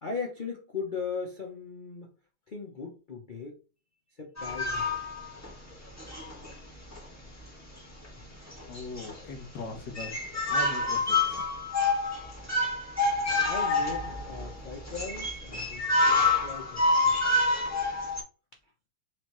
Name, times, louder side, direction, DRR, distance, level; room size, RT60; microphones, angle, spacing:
voice 1, 0.0-2.1 2.5-3.6 4.2-4.9 13.4-17.4, left 5 dB, 80° left, 0.4 m, -38 dB
sound 1, 4.4-5.5 6.0-6.5 6.9-7.0 8.0-8.2 8.5-9.3 9.6-9.7 10.0-18.2, left 2 dB, 10° left, 1.3 m, -27 dB
voice 2, 8.7-11.5, left 3 dB, 60° left, 1.7 m, -40 dB
5.0 x 3.5 x 3.0 m
omnidirectional pair, 2.3 m